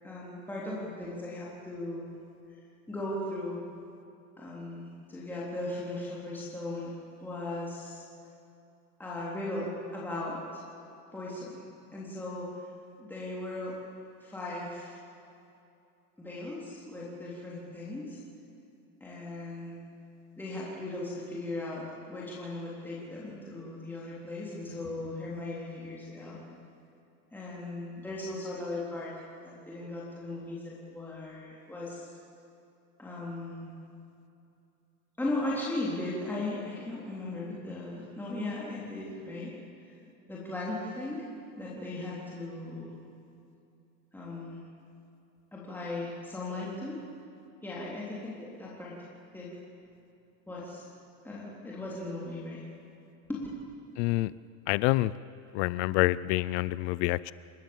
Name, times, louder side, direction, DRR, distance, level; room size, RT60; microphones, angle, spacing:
voice 1, 0.0-2.2 2.9-3.6 4.4-7.0 7.2-8.0 9.0-10.6 11.1-11.6 11.9-12.5 13.0-13.7 14.2-15.0 16.2-18.2 19.0-19.8 20.4-26.4 27.3-32.1 33.0-33.7 35.2-39.5 39.8-39.9 40.3-41.3 41.6-42.9 44.1-44.6 45.5-47.0 47.6-49.0 49.3-49.6 50.5-50.9 51.2-52.6 53.3-53.4, left 2 dB, 5° left, -6 dB, 3.7 m, -37 dB
voice 2, 54.0-54.3 54.7-55.1 55.5-57.3, left 19 dB, 50° left, 19 dB, 0.5 m, -27 dB
28.0 x 13.0 x 7.3 m, 2.7 s
supercardioid pair, 140°, 42 cm